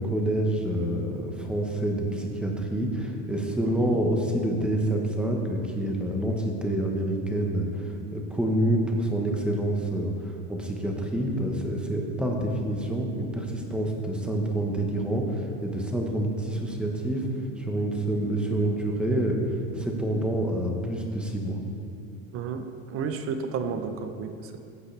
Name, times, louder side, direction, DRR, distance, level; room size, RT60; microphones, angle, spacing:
voice 1, 0.0-10.1 10.5-17.2 17.6-19.4 19.8-21.6, right 1 dB, ahead, 1 dB, 1.0 m, -27 dB
voice 2, 3.6-4.0 22.3-24.6, right 5 dB, 35° right, 8 dB, 0.7 m, -32 dB
14.5 x 7.9 x 3.3 m, 2.4 s
supercardioid pair, 145°, 39 cm